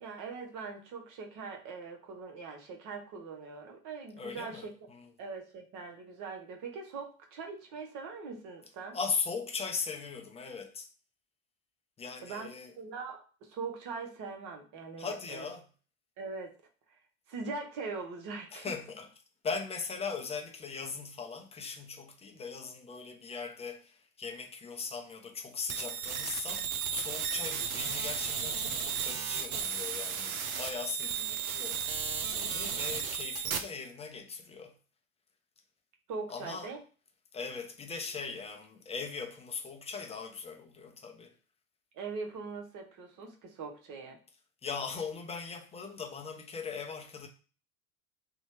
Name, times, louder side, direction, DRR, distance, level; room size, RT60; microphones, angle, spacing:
voice 1, 0.0-4.7 5.2-9.0 12.2-15.5 16.2-16.6 17.3-18.7 36.1-36.8 41.9-44.2, right 4 dB, 45° right, 0.9 m, -41 dB
voice 2, 4.2-5.1 8.9-10.9 12.0-12.7 15.0-15.6 18.5-19.1 19.4-31.9 32.3-34.7 36.3-36.7 37.3-41.3 44.6-47.3, left 5 dB, 15° left, 0.4 m, -39 dB
sound 1, 25.7-33.6, right 6 dB, 80° right, 0.5 m, -34 dB
2.7 x 2.1 x 2.9 m
hypercardioid pair, 70°, 41 cm